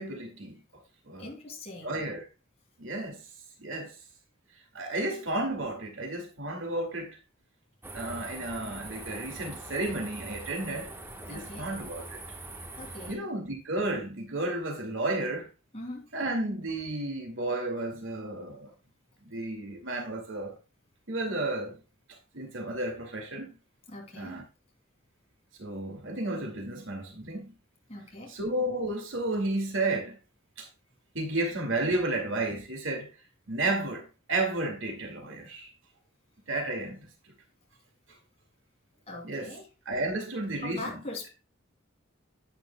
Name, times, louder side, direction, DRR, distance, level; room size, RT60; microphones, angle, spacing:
voice 1, 0.0-1.3 1.8-2.2 2.8-3.2 3.6-3.9 4.7-7.2 7.9-10.9 11.3-12.2 13.1-15.5 16.1-18.7 19.2-20.6 21.1-21.8 22.3-23.5 24.2-24.4 25.6-27.5 28.3-30.2 30.6-30.7 31.1-33.1 33.5-35.7 36.5-37.1 39.2-39.5 39.9-41.0, right 2 dB, 65° right, 2.2 m, -32 dB
voice 2, 1.2-2.0 11.3-11.7 12.8-13.2 15.7-16.1 23.9-24.4 27.9-28.3 39.1-39.7 40.6-41.3, left 2 dB, 30° left, 2.8 m, -41 dB
sound 1, 7.8-13.1, right 2 dB, 10° right, 1.2 m, -43 dB
10.5 x 8.7 x 2.2 m
head